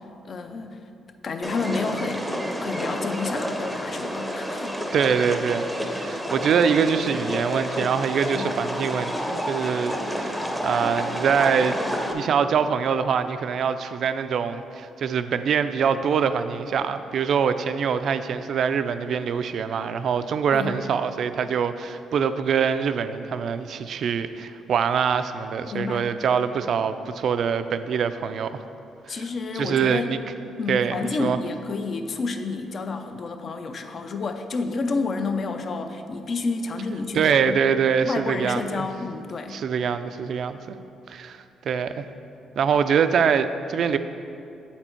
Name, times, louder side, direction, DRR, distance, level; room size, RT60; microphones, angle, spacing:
voice 1, 0.2-0.8 1.2-2.3 2.6-4.8 8.3-8.6 20.5-20.8 25.7-26.1 29.1-30.1 30.6-37.6 38.0-39.6, left 4 dB, 50° left, 7 dB, 0.5 m, -30 dB
sound 1, 1.4-12.1, equal, ahead, 0.6 m, -29 dB
voice 2, 4.9-11.8 12.1-28.6 29.1-29.2 29.5-30.2 30.7-31.4 37.1-38.9 39.5-40.8 41.1-42.1 42.6-44.0, right 7 dB, 65° right, 11 dB, 0.3 m, -24 dB
7.8 x 4.3 x 4.5 m, 2.6 s
cardioid pair, 90°, 0 cm